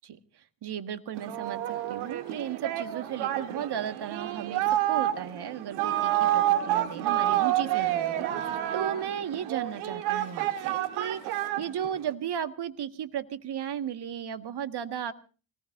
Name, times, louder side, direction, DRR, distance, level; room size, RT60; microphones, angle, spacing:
voice 1, 0.0-15.1, right 9 dB, 55° right, 10 dB, 1.8 m, -35 dB
Singing, 1.2-12.1, right 12 dB, 85° right, 1.7 m, -29 dB
25.5 x 19.5 x 2.6 m, 0.36 s
supercardioid pair, 60°, 47 cm